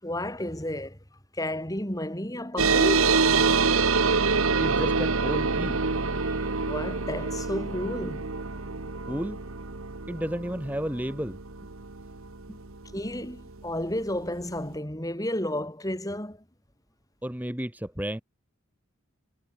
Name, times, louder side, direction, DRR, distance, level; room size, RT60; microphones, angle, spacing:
voice 1, 0.0-1.0 1.3-3.1 6.2-6.4 6.6-8.3 12.9-16.4, left 1 dB, 15° left, 5.1 m, -32 dB
sound 1, 2.6-13.5, right 4 dB, 85° right, 1.6 m, -26 dB
voice 2, 4.6-5.8 9.1-9.4 10.1-11.4 12.5-12.6 17.2-18.2, equal, 10° right, 1.4 m, -32 dB
head